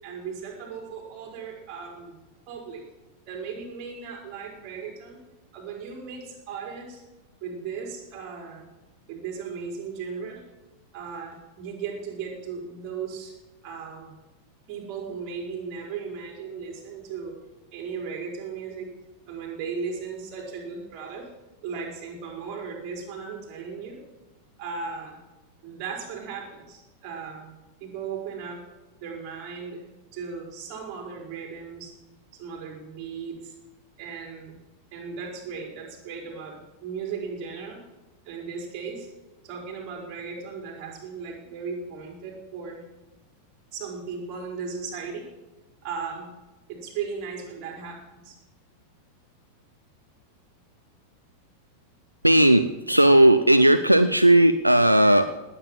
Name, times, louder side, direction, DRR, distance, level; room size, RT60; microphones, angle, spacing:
voice 1, 0.0-2.2 2.5-2.8 3.3-5.2 5.5-7.0 7.4-8.7 9.1-10.4 10.9-13.3 13.6-14.1 14.7-17.3 17.7-18.9 19.3-21.3 21.6-24.0 24.6-25.2 25.6-27.5 27.8-28.6 29.0-29.8 30.1-31.9 32.3-33.5 34.0-34.6 34.9-37.8 38.2-39.1 39.4-42.8 43.7-45.3 45.8-46.3 46.7-48.3, right 5 dB, 40° right, 1 dB, 5.0 m, -36 dB
voice 2, 52.2-55.4, right 1 dB, 85° right, 11 dB, 0.6 m, -17 dB
19.0 x 9.1 x 7.7 m, 1.1 s
figure-of-eight pair, 90°, 0 cm